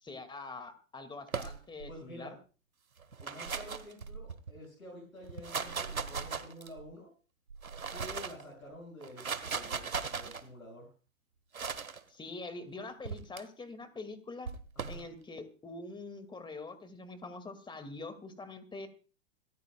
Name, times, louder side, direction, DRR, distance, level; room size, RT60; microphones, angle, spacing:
voice 1, 0.0-2.3 12.1-14.5 14.9-18.9, left 3 dB, 10° left, 10 dB, 2.1 m, -44 dB
sound 1, 1.3-1.9 3.0-4.5 5.2-6.9 7.5-8.4 9.0-10.4 11.5-12.0 13.0-13.4 14.4-15.0, right 5 dB, 90° right, 1.4 m, -38 dB
voice 2, 1.9-2.4 3.2-7.1 7.9-10.9 14.7-15.1, equal, 90° left, -2 dB, 6.4 m, -49 dB
26.0 x 14.0 x 2.3 m, 0.35 s
figure-of-eight pair, 110°, 41 cm